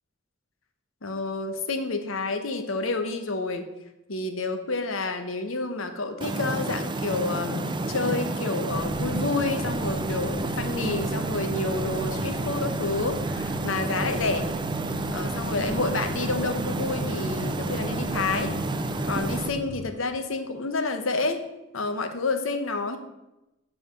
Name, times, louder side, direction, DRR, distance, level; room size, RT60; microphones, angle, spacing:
voice 1, 1.0-3.7 4.1-14.5 15.1-18.5 19.1-21.4 21.7-23.0, left 3 dB, 70° left, 7 dB, 0.9 m, -29 dB
sound 1, 6.2-19.5, right 2 dB, 25° right, 0.5 m, -30 dB
sound 2, 8.7-19.9, right 1 dB, 15° left, 1.9 m, -36 dB
7.4 x 5.0 x 5.9 m, 0.96 s
head